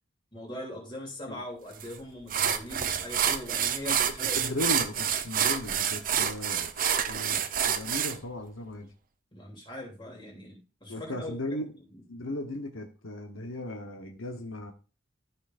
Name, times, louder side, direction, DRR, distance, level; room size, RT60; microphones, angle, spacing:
voice 1, 0.3-4.6 9.3-12.0, left 1 dB, 25° left, -1 dB, 3.0 m, -41 dB
sound 1, 1.8-1.9 2.3-8.2, right 8 dB, 40° right, 0.7 m, -28 dB
voice 2, 4.4-8.9 10.9-11.7 12.1-14.7, left 2 dB, 80° left, 5 dB, 1.1 m, -37 dB
13.5 x 5.7 x 2.5 m, 0.35 s
head